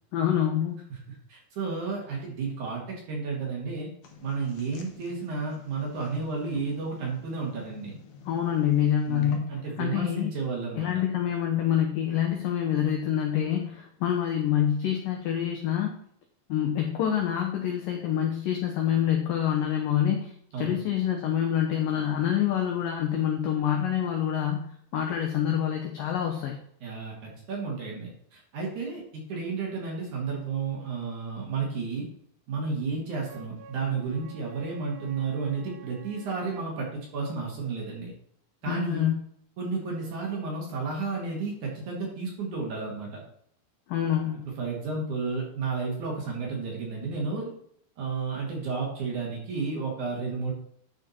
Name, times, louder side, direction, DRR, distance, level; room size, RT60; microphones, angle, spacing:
voice 1, 0.1-0.8 8.3-9.5 9.8-10.3 10.8-16.0 16.5-20.3 20.6-26.6 38.7-39.2 43.9-44.5, left 10 dB, 85° left, 2 dB, 1.9 m, -26 dB
voice 2, 0.9-3.9 4.2-7.9 9.1-10.9 20.5-20.8 26.8-32.1 32.5-38.1 38.6-39.1 39.6-43.2 44.6-47.5 48.0-50.5, right 4 dB, 50° right, -2 dB, 2.8 m, -32 dB
sound 1, 4.0-9.8, left 6 dB, 70° left, 1.9 m, -49 dB
Wind instrument woodwind instrument, 33.2-36.8, right 6 dB, 90° right, 3.2 m, -49 dB
11.0 x 5.0 x 4.3 m, 0.67 s
omnidirectional pair, 5.1 m